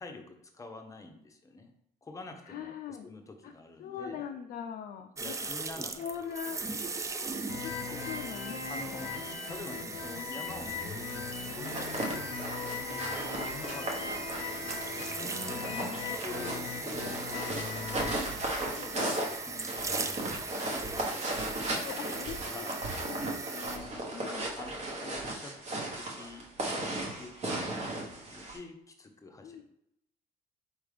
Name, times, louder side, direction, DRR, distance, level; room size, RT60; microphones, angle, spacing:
voice 1, 0.0-1.7 2.0-4.3 5.2-6.1 6.5-6.7 7.9-8.0 8.7-9.2 9.5-15.5 16.2-18.2 18.8-22.8 24.2-25.6 25.9-26.5 27.2-29.6, left 2 dB, 20° left, 4 dB, 0.7 m, -47 dB
voice 2, 2.5-3.1 3.4-3.5 3.8-5.4 6.0-6.6 7.3-9.0 15.4-16.2 18.7-19.2 21.7-22.6 23.0-24.5 29.4-29.6, left 8 dB, 55° left, 4 dB, 0.4 m, -42 dB
sound 1, 5.2-23.8, right 4 dB, 20° right, 0.4 m, -40 dB
sound 2, 7.5-18.2, left 5 dB, 90° left, 0.7 m, -39 dB
sound 3, 11.5-28.6, right 1 dB, 40° right, 1.0 m, -36 dB
4.5 x 3.5 x 3.3 m, 0.78 s
cardioid pair, 110°, 17 cm